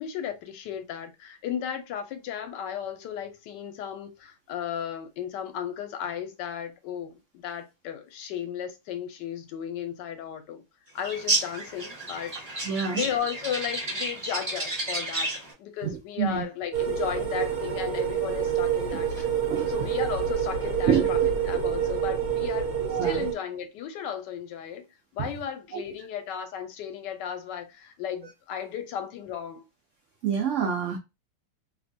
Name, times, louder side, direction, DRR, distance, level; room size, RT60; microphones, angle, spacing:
voice 1, 0.0-10.6 10.9-12.6 12.9-15.3 15.6-19.3 19.7-21.2 21.5-24.9 25.1-29.7, left 9 dB, 85° left, 1.2 m, -35 dB
sound 1, 11.0-15.5, right 2 dB, 30° right, 0.7 m, -31 dB
voice 2, 12.6-13.0 16.2-16.4 18.9-19.0 19.5-19.8 20.9-21.1 22.9-23.2 25.2-25.3 25.7-25.8 30.2-31.0, right 7 dB, 90° right, 0.6 m, -26 dB
sound 2, 16.7-23.3, right 8 dB, 60° right, 1.3 m, -27 dB
3.0 x 2.2 x 2.6 m
omnidirectional pair, 1.9 m